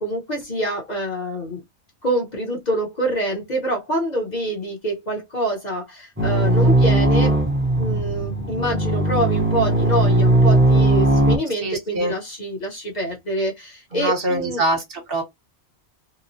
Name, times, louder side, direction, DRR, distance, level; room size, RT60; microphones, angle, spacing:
voice 1, 0.0-1.6 2.0-7.3 7.8-14.6, right 1 dB, 45° left, 0.9 m, -26 dB
sound 1, 6.2-11.4, right 1 dB, 15° right, 0.6 m, -18 dB
voice 2, 11.6-12.1 13.9-15.2, right 1 dB, 60° right, 1.0 m, -24 dB
3.0 x 2.0 x 2.6 m
omnidirectional pair, 1.1 m